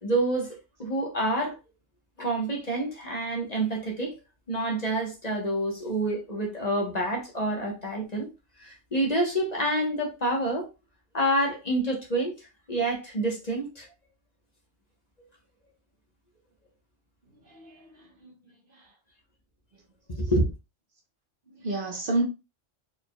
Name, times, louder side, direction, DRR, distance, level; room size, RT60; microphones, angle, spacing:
voice 1, 0.0-1.5 2.2-4.1 4.5-8.3 8.6-10.7 11.1-13.9 20.2-20.5, right 1 dB, 35° left, 1.3 m, -28 dB
voice 2, 17.4-18.3 18.7-18.9 21.5-22.2, right 2 dB, 50° right, 1.1 m, -31 dB
4.7 x 3.8 x 2.3 m
omnidirectional pair, 1.2 m